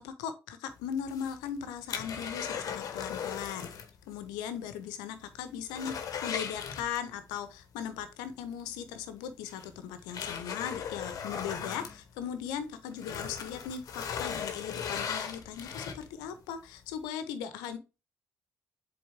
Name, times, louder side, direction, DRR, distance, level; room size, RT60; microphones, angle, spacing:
voice 1, 0.0-3.7 4.1-17.8, left 8 dB, 80° left, 11 dB, 1.0 m, -38 dB
sound 1, 1.0-4.0 4.2-4.3 4.8-4.9 5.3-7.3 8.7-8.8 9.5-12.6 12.9-16.3 16.8-16.9, left 7 dB, 60° left, 1.1 m, -38 dB
7.9 x 3.9 x 3.5 m, 0.29 s
hypercardioid pair, 45°, 7 cm